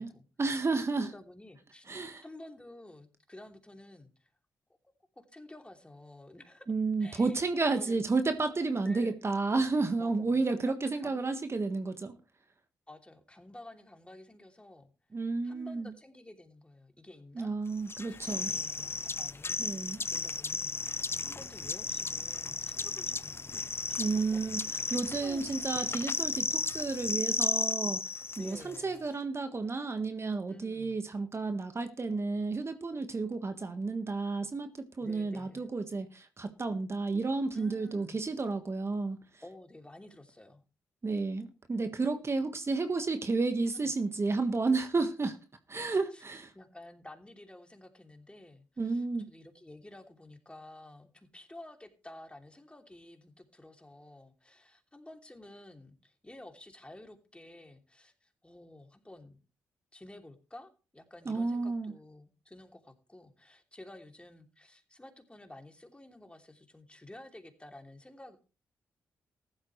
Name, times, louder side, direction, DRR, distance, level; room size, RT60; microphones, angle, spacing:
voice 1, 0.4-1.1 1.9-2.2 6.7-12.1 15.1-15.9 17.3-18.5 19.6-20.0 24.0-24.6 24.9-28.0 28.4-39.2 41.0-45.4 45.7-46.5 48.8-49.3 61.2-61.9, right 3 dB, 40° right, 8 dB, 1.5 m, -31 dB
voice 2, 1.0-4.3 5.1-6.7 7.0-7.4 7.7-8.0 8.8-9.2 10.0-11.3 12.9-14.9 15.4-17.5 18.1-20.7 21.2-24.4 25.1-25.5 28.4-29.1 30.5-31.0 35.0-35.7 37.5-38.3 39.4-40.6 43.7-43.9 46.1-46.2 46.5-59.4 59.9-68.4, left 1 dB, 15° left, 4 dB, 3.0 m, -52 dB
sound 1, 17.9-28.8, left 4 dB, 35° left, 0.6 m, -34 dB
14.5 x 12.0 x 3.2 m, 0.33 s
hypercardioid pair, 45°, 7 cm